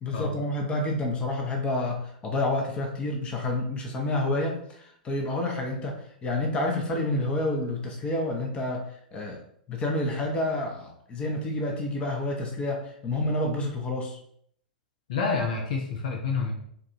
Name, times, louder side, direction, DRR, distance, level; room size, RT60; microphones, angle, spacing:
voice 1, 0.0-9.4 9.7-14.2, left 1 dB, 20° left, 1 dB, 0.9 m, -29 dB
voice 2, 15.1-16.5, left 4 dB, 55° left, 1 dB, 0.8 m, -28 dB
3.9 x 2.6 x 4.3 m, 0.67 s
figure-of-eight pair, 100°, 5 cm